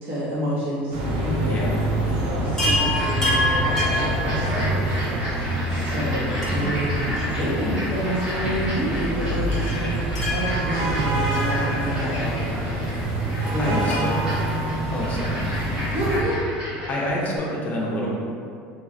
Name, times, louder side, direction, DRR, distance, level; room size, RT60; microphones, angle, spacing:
voice 1, 0.0-1.7 2.2-4.8 5.4-9.9 10.3-12.8 13.5-14.1 15.9-16.4, right 1 dB, 45° right, -11 dB, 1.0 m, -29 dB
sound 1, 0.9-16.2, right 1 dB, 65° right, 0.7 m, -26 dB
Chime, 2.6-5.0 6.4-8.0 8.2-8.3 9.5-12.2 13.9-15.5 17.1-17.2 17.4-17.5, left 1 dB, 10° left, 1.1 m, -29 dB
sound 2, 2.9-16.9, equal, 25° right, 1.2 m, -34 dB
voice 2, 6.3-6.7 13.6-14.2 14.9-15.5 16.9-18.1, left 1 dB, 30° left, -4 dB, 0.7 m, -28 dB
3.1 x 2.4 x 2.6 m, 2.4 s
supercardioid pair, 115°, 5 cm